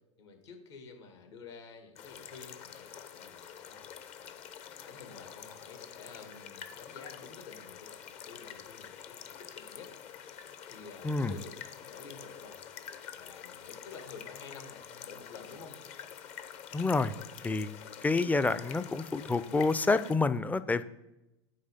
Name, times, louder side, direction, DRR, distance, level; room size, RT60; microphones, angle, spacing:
voice 1, 0.2-3.9 4.8-9.9 10.7-12.6 13.1-15.8, left 5 dB, 70° left, 5 dB, 1.9 m, -50 dB
sound 1, 2.0-20.2, left 8 dB, 45° left, 0.8 m, -47 dB
voice 2, 11.0-11.4 16.7-17.1 17.4-17.7 18.0-20.8, left 3 dB, 10° left, 14 dB, 0.5 m, -28 dB
9.5 x 3.3 x 6.6 m, 0.93 s
figure-of-eight pair, 80°, 15 cm